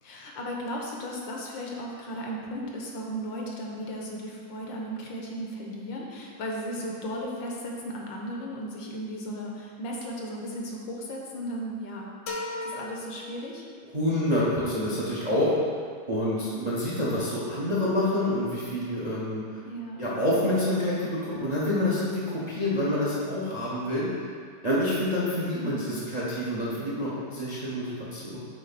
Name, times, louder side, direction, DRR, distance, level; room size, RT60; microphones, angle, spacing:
voice 1, 0.0-12.1 12.6-13.6 19.6-20.0 25.5-26.0, equal, 70° left, -1 dB, 1.5 m, -35 dB
sound 1, 12.3-14.0, left 2 dB, 50° left, 1.0 m, -37 dB
voice 2, 13.9-15.5 16.1-19.6 20.0-24.1 24.6-28.4, left 1 dB, 30° right, -7 dB, 0.8 m, -27 dB
8.7 x 3.5 x 4.1 m, 2.1 s
omnidirectional pair, 2.2 m